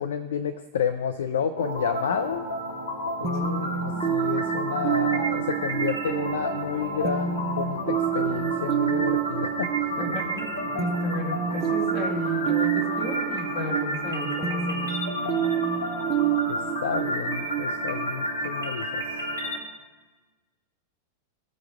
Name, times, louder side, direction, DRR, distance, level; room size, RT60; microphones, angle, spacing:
voice 1, 0.0-2.4 3.2-9.9 16.5-19.0, left 7 dB, 65° left, 9 dB, 0.4 m, -30 dB
sound 1, 1.6-19.6, right 1 dB, 80° left, 1.7 m, -31 dB
sound 2, 3.2-18.8, right 9 dB, 30° right, 0.5 m, -29 dB
voice 2, 9.9-14.9, left 1 dB, 40° left, -3 dB, 3.0 m, -34 dB
17.5 x 6.2 x 3.4 m, 1.3 s
figure-of-eight pair, 90°, 0 cm